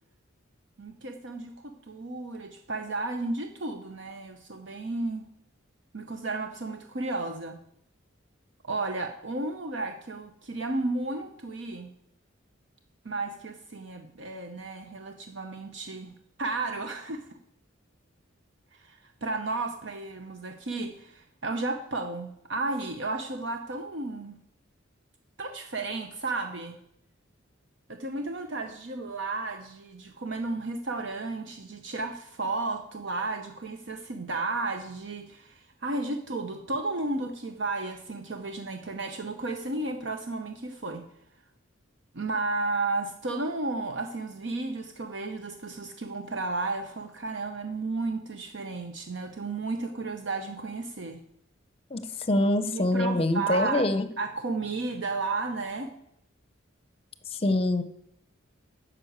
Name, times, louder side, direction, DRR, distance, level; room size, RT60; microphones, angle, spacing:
voice 1, 0.8-5.2 5.9-7.6 8.6-11.9 13.0-16.1 16.4-17.4 18.7-24.3 25.4-26.8 27.9-41.0 42.1-51.2 52.7-53.8 54.2-55.9, right 3 dB, 60° right, 6 dB, 0.8 m, -33 dB
voice 2, 51.9-54.1 57.3-57.8, left 1 dB, 30° left, 12 dB, 0.7 m, -25 dB
9.6 x 6.2 x 7.9 m, 0.76 s
head